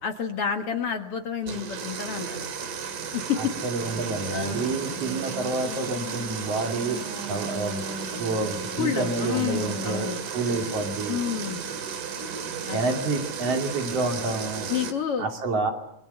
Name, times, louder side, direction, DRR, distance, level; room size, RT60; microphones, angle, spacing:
voice 1, 0.0-2.8 3.1-3.5 4.3-4.7 8.8-10.2 11.1-11.6 12.7-12.8 14.7-15.3, left 8 dB, 55° left, 6 dB, 2.3 m, -29 dB
sound 1, 1.4-14.9, right 6 dB, 85° right, 3.7 m, -34 dB
voice 2, 3.4-7.8 8.2-11.2 12.7-14.7 15.2-15.7, right 3 dB, 55° right, 3 dB, 3.7 m, -29 dB
Engine / Sawing, 3.8-10.1, right 1 dB, 35° right, 4.1 m, -40 dB
26.5 x 22.0 x 6.9 m, 0.82 s
omnidirectional pair, 3.5 m